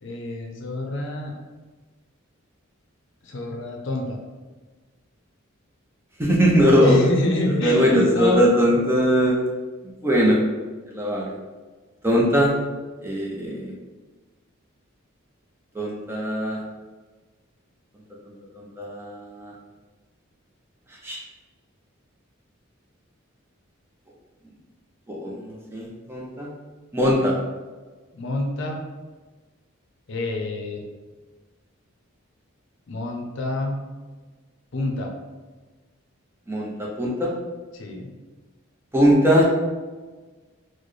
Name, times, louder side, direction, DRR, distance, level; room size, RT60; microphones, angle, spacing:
voice 1, 0.0-1.3 3.2-4.2 6.8-8.4 8.7-8.8 28.1-28.8 30.1-30.8 32.9-33.8 34.7-35.1 37.7-38.1, left 2 dB, 60° left, 1 dB, 0.6 m, -27 dB
voice 2, 6.2-7.0 7.6-9.4 10.0-10.4 10.9-11.3 12.0-12.5 13.0-13.7 15.7-16.6 18.3-19.5 21.0-21.2 25.1-26.5 26.9-27.3 36.5-37.3 38.9-39.4, equal, 10° right, -3 dB, 0.5 m, -20 dB
4.2 x 2.1 x 3.1 m, 1.3 s
head